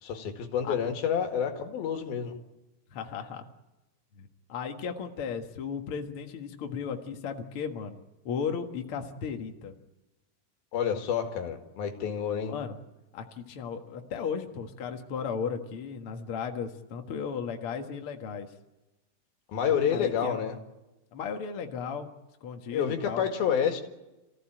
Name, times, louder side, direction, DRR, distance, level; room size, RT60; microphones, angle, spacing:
voice 1, 0.0-2.3 10.7-12.6 19.5-20.6 22.7-23.8, left 8 dB, 80° left, 5 dB, 3.8 m, -28 dB
voice 2, 2.9-3.5 4.2-9.7 12.5-12.8 13.1-18.5 19.9-20.4 21.1-22.1 22.4-23.3, left 6 dB, 45° left, 4 dB, 2.0 m, -35 dB
28.0 x 15.5 x 9.0 m, 1.0 s
omnidirectional pair, 4.2 m